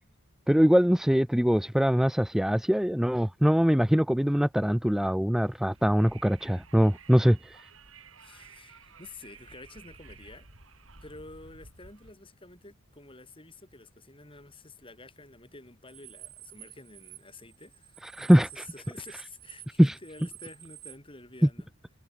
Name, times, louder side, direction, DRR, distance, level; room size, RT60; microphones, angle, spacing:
voice 1, 0.5-7.6 18.1-18.6 19.8-20.0, equal, ahead, 0.4 m, -23 dB
Wind, 5.5-12.1, right 4 dB, 75° right, 4.6 m, -53 dB
voice 2, 8.1-10.5 11.0-21.7, left 2 dB, 25° left, 7.4 m, -50 dB
sound 1, 15.9-21.0, right 15 dB, 50° right, 4.3 m, -49 dB
head